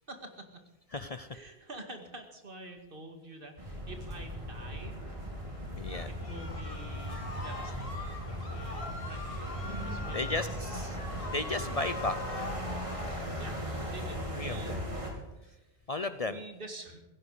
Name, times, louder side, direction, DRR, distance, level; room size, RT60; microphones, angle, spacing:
voice 1, 0.1-0.5 1.3-5.7 6.0-8.2 8.5-9.2 9.6-10.4 13.4-13.6 13.9-15.7 16.3-17.0, right 2 dB, 60° right, 4 dB, 2.3 m, -48 dB
voice 2, 0.9-1.4 5.8-6.1 10.1-11.0 11.3-12.4 14.3-14.8 15.9-16.4, left 2 dB, 40° left, 11 dB, 0.7 m, -35 dB
sound 1, 3.6-15.1, equal, 30° right, 3.0 m, -38 dB
sound 2, 5.9-13.3, left 2 dB, 65° left, 2.4 m, -43 dB
16.5 x 15.5 x 5.0 m, 1.0 s
omnidirectional pair, 1.1 m